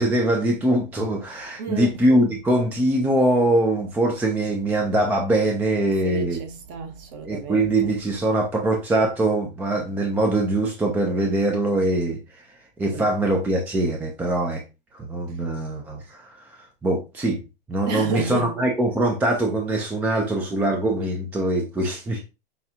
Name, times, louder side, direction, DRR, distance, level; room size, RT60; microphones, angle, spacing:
voice 1, 0.0-6.4 7.2-12.2 12.8-14.6 14.9-17.4 17.7-22.2, right 1 dB, 5° right, 0.4 m, -22 dB
voice 2, 1.6-2.0 6.0-7.9 12.9-13.1 17.9-18.5, right 5 dB, 35° right, 1.0 m, -31 dB
5.7 x 2.3 x 2.8 m
hypercardioid pair, 125°, 31 cm